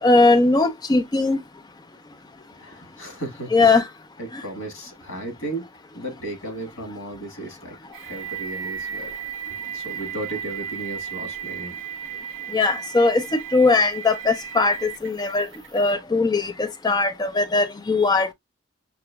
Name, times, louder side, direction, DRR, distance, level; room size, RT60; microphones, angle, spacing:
voice 1, 0.0-1.4 3.5-3.8 12.5-13.3 13.5-15.5 15.7-18.3, left 3 dB, 20° left, 0.4 m, -19 dB
voice 2, 2.5-3.8 4.2-9.1 9.5-11.8, right 2 dB, 85° left, 1.6 m, -35 dB
sound 1, 7.9-15.9, right 8 dB, 65° right, 0.5 m, -35 dB
5.9 x 2.8 x 2.2 m
head